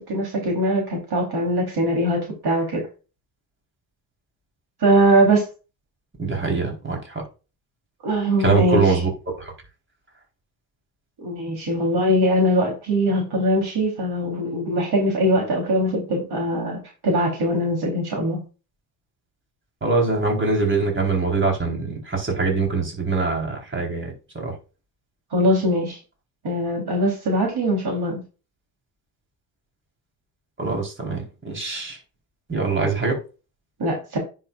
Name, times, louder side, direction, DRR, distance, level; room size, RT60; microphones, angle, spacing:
voice 1, 0.0-2.8 4.8-5.5 8.0-9.0 11.2-18.4 25.3-26.0 26.4-28.2 33.8-34.2, equal, 50° right, 3.7 m, -21 dB
voice 2, 6.2-7.2 8.4-9.1 9.4-9.5 19.8-24.5 30.6-32.0 32.5-33.2, right 3 dB, 25° right, 4.2 m, -23 dB
10.0 x 6.8 x 2.5 m
hypercardioid pair, 55°, 49 cm